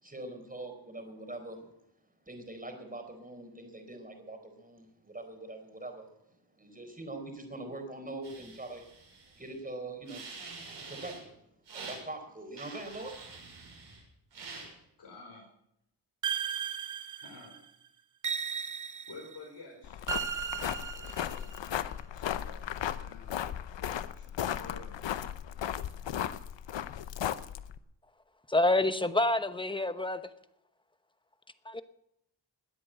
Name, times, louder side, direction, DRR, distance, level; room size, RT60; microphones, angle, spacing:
voice 1, 0.0-1.7 2.3-10.3 10.6-11.4 11.7-13.2, right 2 dB, 20° right, 5 dB, 4.5 m, -43 dB
sound 1, 8.2-9.5 10.1-11.2 11.7-12.0 12.5-14.0 14.3-14.7, right 4 dB, 85° right, 6.9 m, -46 dB
voice 2, 15.0-15.5 17.2-17.6 19.1-25.0, left 3 dB, 65° left, -1 dB, 4.4 m, -52 dB
sound 2, 16.2-17.6 18.2-19.4 20.1-21.6, right 7 dB, 45° right, 1.0 m, -35 dB
sound 3, 19.8-27.8, left 10 dB, 85° left, 0.8 m, -36 dB
voice 3, 28.5-30.2 31.6-31.8, left 2 dB, 10° left, 11 dB, 1.0 m, -27 dB
20.5 x 8.5 x 7.7 m, 0.79 s
cardioid pair, 85°, 43 cm